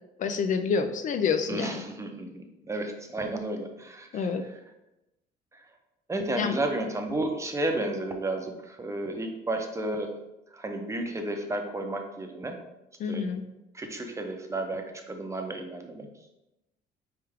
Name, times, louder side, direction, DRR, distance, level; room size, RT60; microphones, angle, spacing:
voice 1, 0.2-1.8 4.1-4.4 6.4-6.5 13.0-13.5, left 5 dB, 50° left, 8 dB, 0.4 m, -27 dB
voice 2, 1.5-4.3 6.1-10.1 10.5-12.6 13.1-13.2 13.7-16.1, right 2 dB, 15° right, 4 dB, 0.6 m, -32 dB
4.4 x 3.4 x 3.5 m, 0.92 s
cardioid pair, 110°, 17 cm